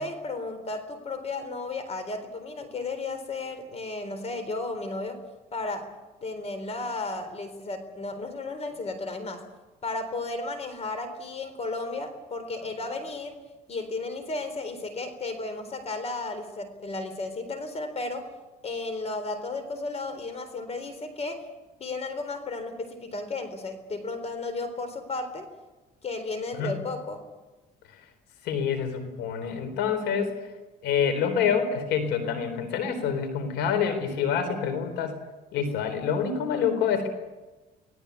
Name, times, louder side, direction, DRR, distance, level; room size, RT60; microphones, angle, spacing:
voice 1, 0.0-5.2 5.5-5.9 6.2-9.4 9.8-13.4 13.7-18.3 18.6-21.4 21.8-25.5 26.0-27.2, left 3 dB, 40° left, 9 dB, 4.0 m, -34 dB
voice 2, 28.4-30.4 30.8-35.2 35.5-37.1, left 7 dB, 85° left, 9 dB, 3.9 m, -27 dB
25.5 x 18.0 x 8.4 m, 1.1 s
cardioid pair, 110°, 17 cm